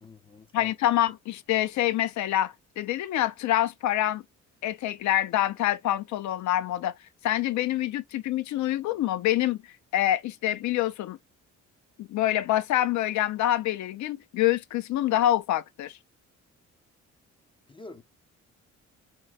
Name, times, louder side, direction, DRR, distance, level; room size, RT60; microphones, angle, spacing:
voice 1, 0.0-0.7 17.7-18.0, left 3 dB, 15° left, 0.4 m, -47 dB
voice 2, 0.5-4.2 4.6-6.9 7.2-9.6 9.9-11.2 12.0-16.0, left 13 dB, 70° left, 0.5 m, -26 dB
3.1 x 3.0 x 2.2 m
cardioid pair, 90°, 30 cm